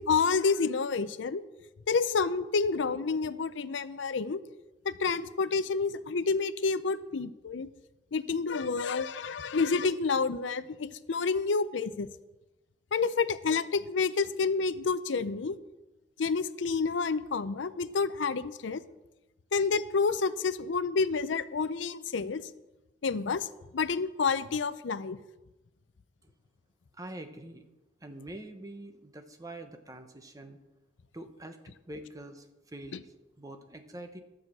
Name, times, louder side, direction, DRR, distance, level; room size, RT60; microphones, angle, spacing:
voice 1, 0.0-1.4 1.9-4.4 4.8-7.7 8.1-12.1 12.9-15.6 16.2-18.8 19.5-22.5 23.0-23.5 23.7-25.2, left 4 dB, 80° left, 15 dB, 0.5 m, -29 dB
voice 2, 26.9-27.7 28.0-30.6 31.1-34.2, right 1 dB, 20° right, 7 dB, 1.0 m, -45 dB
12.5 x 6.3 x 7.6 m, 1.0 s
head